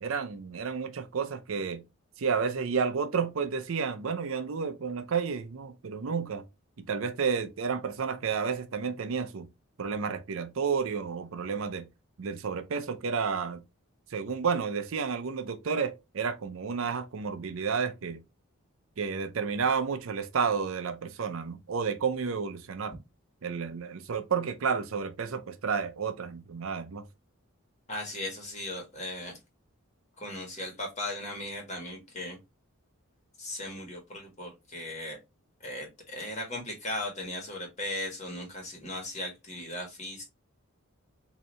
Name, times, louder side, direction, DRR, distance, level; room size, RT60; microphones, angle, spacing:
voice 1, 0.0-1.8 2.2-6.4 6.8-9.5 9.8-11.9 12.2-13.6 14.1-18.2 19.0-22.9 23.4-27.0, right 6 dB, 65° right, 0.5 m, -31 dB
voice 2, 27.9-29.3 30.2-32.4 33.4-35.2 35.6-40.2, left 1 dB, 30° left, 1.3 m, -37 dB
3.9 x 2.7 x 3.1 m
head